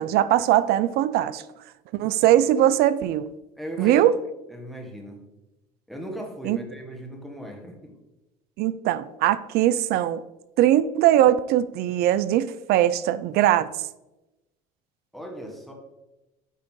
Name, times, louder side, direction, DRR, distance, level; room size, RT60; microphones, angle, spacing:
voice 1, 0.0-1.4 1.9-3.3 3.8-4.2 6.4-6.6 8.6-10.2 10.6-13.7, right 12 dB, 60° right, 0.4 m, -20 dB
voice 2, 3.6-4.1 4.5-5.2 5.9-7.9 15.1-15.7, equal, ahead, 1.7 m, -37 dB
9.4 x 3.7 x 3.8 m
supercardioid pair, 85°, 18 cm